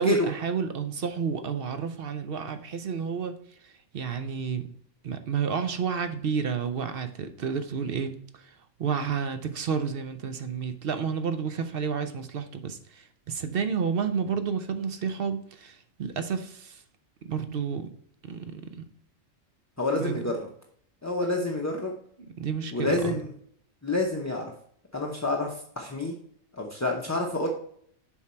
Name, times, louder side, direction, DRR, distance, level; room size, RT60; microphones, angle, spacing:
voice 1, 0.0-3.4 3.6-4.6 5.0-16.8 17.2-17.9 18.2-18.8 20.0-20.1 22.4-23.2, right 6 dB, 55° right, 0.7 m, -30 dB
voice 2, 19.8-20.5 21.0-21.9 22.7-23.3 23.8-24.5 24.9-26.1 26.5-27.5, left 2 dB, 15° left, 0.6 m, -28 dB
7.1 x 4.6 x 4.3 m
omnidirectional pair, 1.4 m